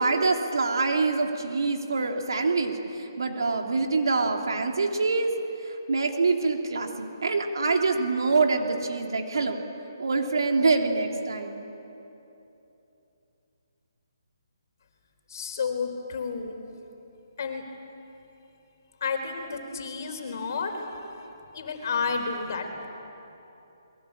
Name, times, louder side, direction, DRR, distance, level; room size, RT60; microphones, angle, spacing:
voice 1, 0.0-5.3 5.6-9.6 10.0-11.6, right 3 dB, 80° right, 3 dB, 2.9 m, -25 dB
voice 2, 15.3-16.6 17.4-17.6 19.0-21.3 21.5-22.9, left 5 dB, 50° left, 4 dB, 4.1 m, -31 dB
27.0 x 22.5 x 8.7 m, 3.0 s
hypercardioid pair, 160°, 2 cm